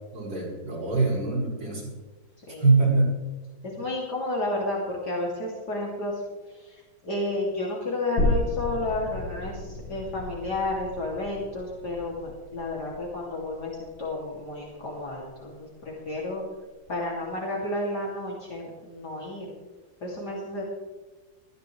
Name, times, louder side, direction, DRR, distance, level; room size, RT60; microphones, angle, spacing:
voice 1, 0.1-1.9 2.6-3.2, right 3 dB, 80° right, -6 dB, 6.5 m, -23 dB
voice 2, 3.8-6.1 6.5-6.7 7.0-16.4 16.9-19.5 20.0-20.6, left 2 dB, 55° left, -4 dB, 3.2 m, -31 dB
sound 1, 8.2-15.5 15.8-15.9, left 2 dB, 75° left, 2.1 m, -33 dB
19.0 x 14.5 x 3.2 m, 1.2 s
omnidirectional pair, 2.1 m